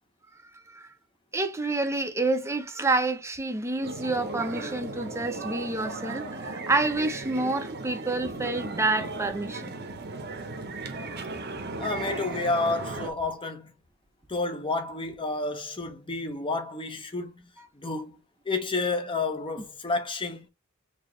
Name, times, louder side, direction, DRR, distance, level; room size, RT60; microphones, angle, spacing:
voice 1, 1.3-9.7, right 2 dB, 10° right, 0.6 m, -28 dB
sound 1, 3.8-13.1, right 3 dB, 45° right, 0.8 m, -36 dB
voice 2, 11.8-13.7 14.3-17.4 17.8-18.1 18.5-20.5, left 3 dB, 20° left, 0.7 m, -30 dB
4.3 x 2.8 x 3.0 m
head